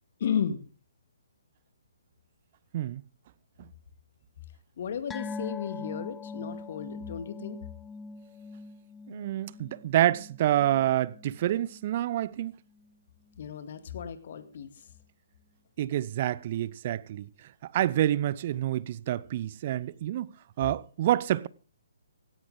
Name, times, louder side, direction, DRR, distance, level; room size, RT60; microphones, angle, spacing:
voice 1, 0.2-0.6 4.8-7.6 13.4-14.8, left 8 dB, 45° left, 2.2 m, -34 dB
sound 1, 5.1-11.9 12.2-12.4 12.8-12.9, left 3 dB, 10° left, 0.6 m, -42 dB
voice 2, 9.1-12.5 15.8-17.3 17.6-20.3 20.6-21.5, right 13 dB, 40° right, 0.7 m, -27 dB
17.0 x 14.5 x 3.9 m
figure-of-eight pair, 130°, 0 cm